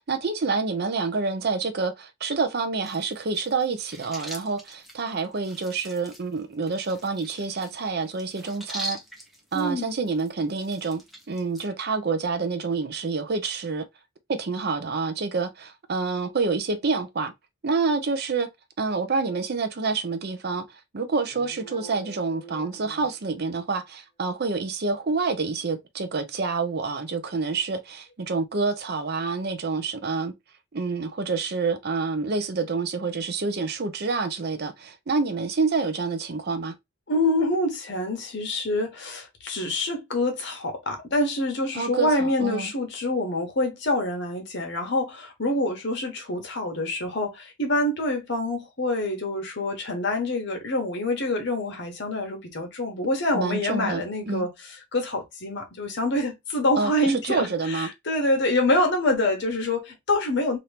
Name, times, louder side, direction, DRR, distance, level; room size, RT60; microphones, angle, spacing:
voice 1, 0.0-9.0 9.5-11.0 11.3-13.9 14.3-17.3 17.6-18.5 18.8-30.3 30.7-36.7 41.7-42.7 53.3-54.5 56.8-57.9, right 4 dB, 50° right, 0.6 m, -27 dB
sound 1, 2.8-11.6, right 1 dB, ahead, 0.7 m, -42 dB
voice 2, 9.5-10.0 37.1-60.6, left 1 dB, 60° left, 1.0 m, -26 dB
sound 2, 21.2-23.8, right 2 dB, 25° left, 1.2 m, -46 dB
2.9 x 2.6 x 3.3 m
head